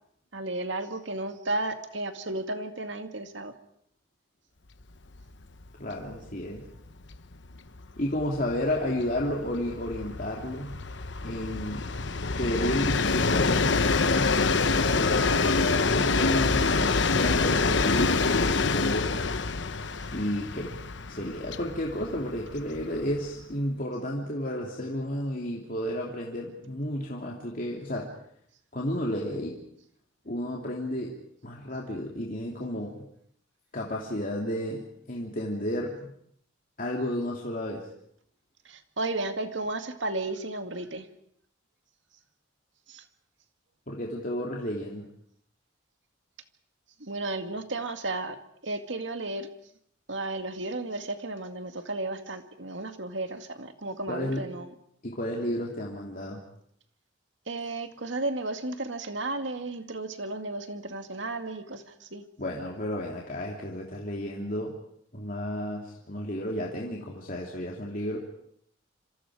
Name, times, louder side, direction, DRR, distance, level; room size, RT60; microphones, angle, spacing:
voice 1, 0.3-3.5 38.7-41.1 42.9-43.0 47.0-49.5 50.1-54.7 57.5-62.2, right 2 dB, 70° right, 7 dB, 2.1 m, -33 dB
Train, 5.1-5.3 5.6-5.7 6.0-23.4, left 4 dB, 65° left, 1.0 m, -26 dB
voice 2, 5.8-6.6 8.0-10.8 11.2-11.9 12.3-14.4 15.0-19.1 20.1-20.7 21.1-28.1 28.7-29.6 30.2-31.1 31.4-33.0 33.7-36.1 36.8-37.9 43.9-45.0 54.1-54.4 55.0-56.4 62.4-64.7 65.1-68.2, left 1 dB, 45° left, -2 dB, 2.9 m, -32 dB
27.5 x 26.5 x 5.0 m, 0.67 s
head